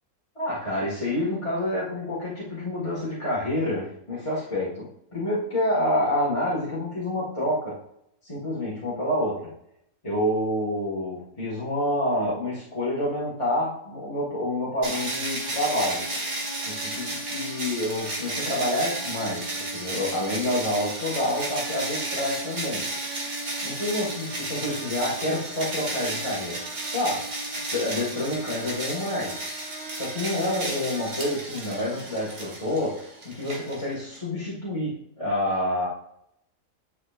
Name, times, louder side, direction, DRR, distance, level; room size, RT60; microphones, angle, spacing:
voice 1, 0.4-7.8 8.2-9.5 10.0-16.1 16.6-22.9 23.6-27.3 27.7-35.9, left 1 dB, 20° left, -8 dB, 1.9 m, -28 dB
sound 1, 14.8-34.2, right 2 dB, 60° right, 2.1 m, -33 dB
9.8 x 5.7 x 2.5 m, 0.76 s
omnidirectional pair, 1.5 m